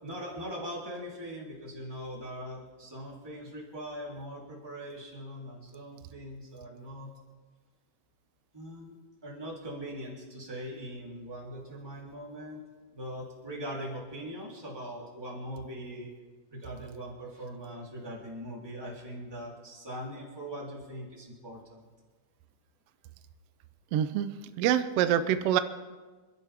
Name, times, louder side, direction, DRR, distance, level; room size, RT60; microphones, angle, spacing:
voice 1, 0.0-7.1 8.5-8.9 9.2-12.6 12.9-16.1 16.5-21.9, equal, 5° right, -4 dB, 3.2 m, -41 dB
voice 2, 23.9-24.3 24.6-25.6, right 10 dB, 80° right, 10 dB, 1.4 m, -25 dB
28.5 x 12.0 x 3.6 m, 1.4 s
omnidirectional pair, 3.6 m